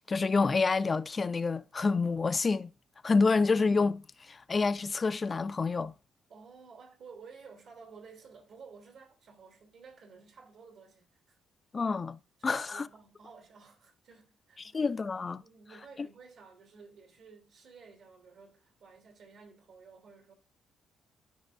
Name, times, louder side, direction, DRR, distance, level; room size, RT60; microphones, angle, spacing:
voice 1, 0.0-2.7 3.0-5.9 11.7-12.9 14.6-15.4, left 4 dB, 35° left, 0.4 m, -28 dB
voice 2, 6.3-11.4 12.4-14.8 15.4-20.3, right 5 dB, 70° right, 2.9 m, -53 dB
12.0 x 5.3 x 2.5 m
cardioid pair, 90°, 0 cm